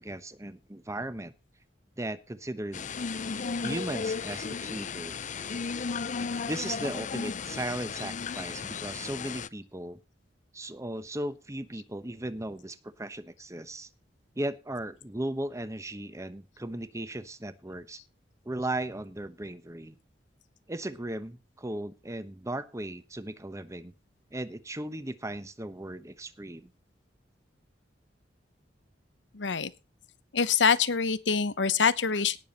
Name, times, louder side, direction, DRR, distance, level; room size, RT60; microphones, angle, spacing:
voice 1, 0.0-1.3 2.0-2.9 3.6-5.2 6.5-10.0 10.5-13.9 14.4-18.0 18.4-20.0 20.7-23.9 24.3-26.7, right 1 dB, 15° right, 13 dB, 1.0 m, -36 dB
sound 1, 2.7-9.5, left 5 dB, 45° left, 0.6 m, -34 dB
voice 2, 29.3-29.7 30.3-32.4, left 6 dB, 90° left, 16 dB, 1.0 m, -25 dB
18.0 x 7.1 x 4.2 m, 0.29 s
head